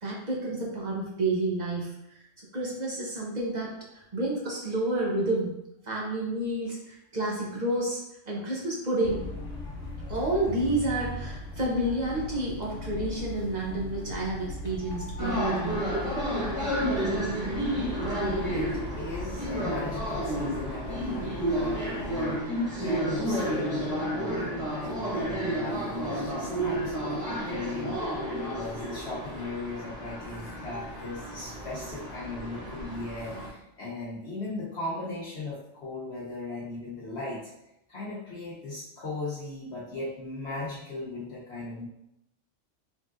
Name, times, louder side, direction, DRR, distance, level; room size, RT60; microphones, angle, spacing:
voice 1, 0.0-1.9 2.5-3.7 3.9-5.5 5.9-8.0 8.3-9.2 10.1-15.8, right 1 dB, 40° right, -3 dB, 0.8 m, -29 dB
sound 1, 9.0-22.3, left 1 dB, 80° left, 1.3 m, -39 dB
sound 2, 15.2-33.5, equal, 15° right, 0.9 m, -31 dB
voice 2, 18.5-37.5 37.9-41.9, left 2 dB, 65° left, -7 dB, 1.0 m, -38 dB
3.7 x 3.7 x 2.4 m, 0.82 s
omnidirectional pair, 1.3 m